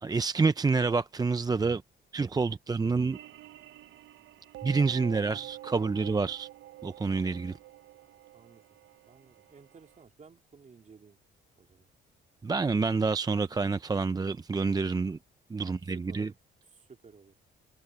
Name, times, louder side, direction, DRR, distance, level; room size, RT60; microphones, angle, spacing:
voice 1, 0.0-1.8 2.1-3.2 4.6-6.5 6.8-7.5 12.4-15.2 15.5-16.3, right 4 dB, 20° right, 0.5 m, -28 dB
sound 1, 3.1-10.0, right 16 dB, 75° right, 0.7 m, -48 dB
voice 2, 8.3-8.6 9.1-11.2 11.6-11.9 15.6-15.7 16.1-16.3 16.7-17.3, right 5 dB, 35° right, 2.9 m, -55 dB
cardioid pair, 90°, 20 cm